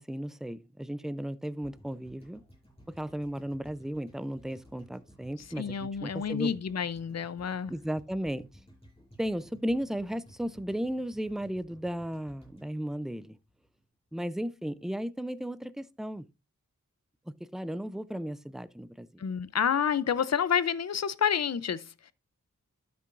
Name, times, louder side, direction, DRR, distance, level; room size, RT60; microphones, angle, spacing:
voice 1, 0.0-2.4 2.9-6.5 7.7-8.5 9.2-13.4 14.1-16.3 17.3-19.2, equal, ahead, 0.4 m, -35 dB
sound 1, 1.6-13.8 14.1-14.2, equal, 20° left, 5.8 m, -57 dB
voice 2, 5.6-7.7 19.2-22.1, left 7 dB, 55° left, 0.6 m, -29 dB
12.0 x 6.9 x 2.5 m
wide cardioid pair, 100°, 31 cm